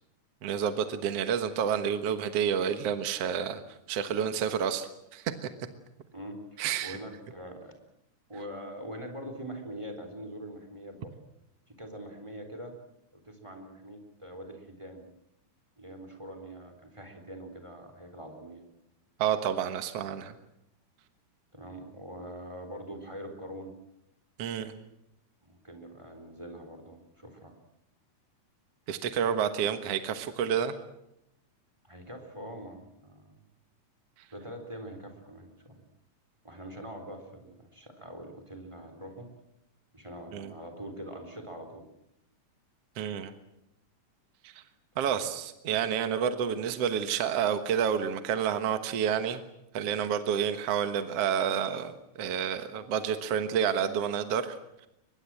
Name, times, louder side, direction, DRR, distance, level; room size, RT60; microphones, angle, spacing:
voice 1, 0.4-3.6 3.9-5.5 6.6-7.0 19.2-20.4 24.4-24.7 28.9-30.7 40.3-40.5 43.0-43.3 44.4-44.6 45.0-49.4 49.7-54.6, right 8 dB, 60° right, 9 dB, 2.2 m, -29 dB
voice 2, 6.1-7.7 8.3-11.1 11.7-12.7 13.1-15.0 15.8-18.6 21.5-23.7 25.4-27.5 31.8-33.4 34.3-35.8 36.4-39.3 39.9-41.8 45.0-45.2, right 1 dB, 10° right, 5 dB, 3.7 m, -43 dB
23.5 x 21.5 x 7.6 m, 0.82 s
omnidirectional pair, 3.5 m